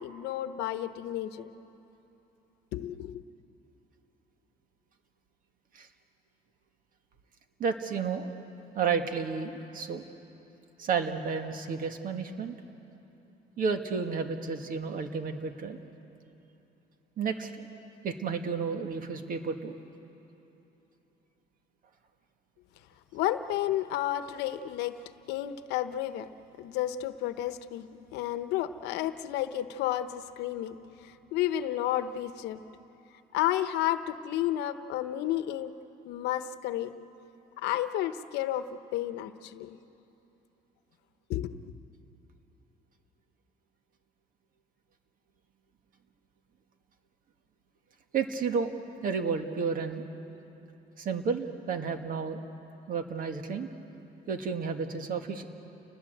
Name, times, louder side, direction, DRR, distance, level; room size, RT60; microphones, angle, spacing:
voice 1, 0.0-1.5 2.7-3.2 23.1-25.0 25.3-26.3 26.6-30.8 31.0-32.6 33.3-35.7 36.0-36.9 37.6-39.8 41.3-41.7, left 12 dB, 90° left, 11 dB, 0.9 m, -32 dB
voice 2, 7.6-8.3 8.7-10.0 10.8-12.6 13.6-15.8 17.2-17.7 18.0-19.7 48.1-48.8 49.0-50.0 51.0-52.4 52.9-53.7 54.3-55.4, right 5 dB, 55° right, 6 dB, 1.8 m, -31 dB
29.5 x 20.0 x 7.9 m, 3.0 s
cardioid pair, 110°, 17 cm